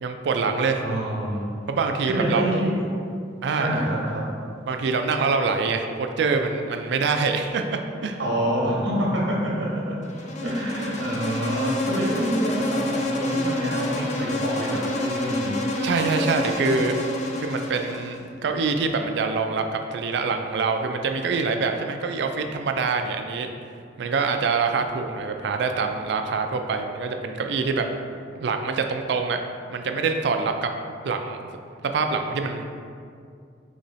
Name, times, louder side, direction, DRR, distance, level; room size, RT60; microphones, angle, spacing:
voice 1, 0.0-0.8 1.7-2.6 3.4-3.8 4.7-8.2 15.8-17.0 17.4-23.5 24.0-27.9 28.4-29.4 29.7-30.7 31.0-31.4 31.8-32.6, right 4 dB, 65° right, 5 dB, 0.4 m, -25 dB
voice 2, 0.8-1.5 2.0-2.8 3.6-4.3 8.2-10.0 10.4-15.5, right 1 dB, 80° right, -4 dB, 1.0 m, -27 dB
Insect, 10.0-18.2, left 1 dB, 40° left, 0.5 m, -28 dB
4.2 x 3.0 x 4.0 m, 2.3 s
head